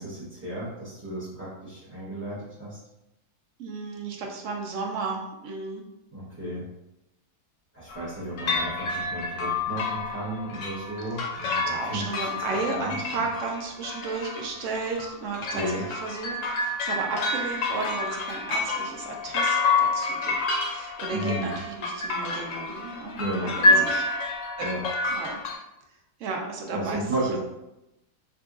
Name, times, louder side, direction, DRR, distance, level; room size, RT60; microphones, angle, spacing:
voice 1, 0.0-2.8 6.1-6.6 7.7-13.2 15.5-15.8 21.1-21.5 23.2-23.9 24.6-24.8 26.7-27.4, right 1 dB, 15° right, -10 dB, 0.5 m, -33 dB
voice 2, 3.6-5.8 11.4-24.1 24.6-24.7 25.1-25.4 26.2-27.0, right 4 dB, 65° right, 1 dB, 0.8 m, -34 dB
sound 1, 7.9-8.1 8.4-25.5, left 2 dB, 65° left, 0.9 m, -28 dB
3.7 x 2.5 x 2.3 m, 0.90 s
omnidirectional pair, 1.6 m